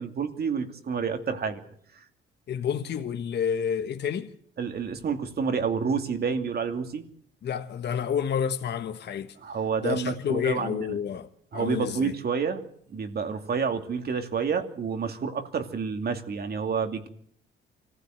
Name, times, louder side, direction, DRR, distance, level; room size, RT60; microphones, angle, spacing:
voice 1, 0.0-1.6 2.0-2.1 4.6-7.1 9.4-10.9 11.5-12.6 12.9-17.1, right 6 dB, 55° right, 2.7 m, -29 dB
voice 2, 2.5-4.3 7.4-9.3 9.8-12.1, left 8 dB, 60° left, 1.4 m, -29 dB
24.5 x 15.5 x 7.9 m
cardioid pair, 90°, 20 cm